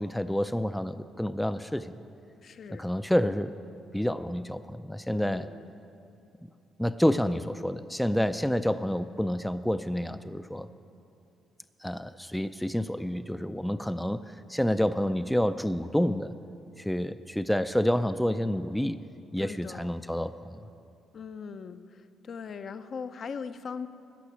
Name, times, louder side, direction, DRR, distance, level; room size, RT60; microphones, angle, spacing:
voice 1, 0.0-2.0 2.7-3.6 3.9-5.5 6.8-10.7 11.8-16.3 16.8-19.0 19.3-20.6, equal, 5° left, 12 dB, 0.3 m, -28 dB
voice 2, 2.4-2.9 5.1-5.6 19.4-20.0 21.1-21.8 22.3-23.9, left 6 dB, 50° left, 11 dB, 0.6 m, -39 dB
14.5 x 5.8 x 9.9 m, 2.6 s
cardioid pair, 105°, 0 cm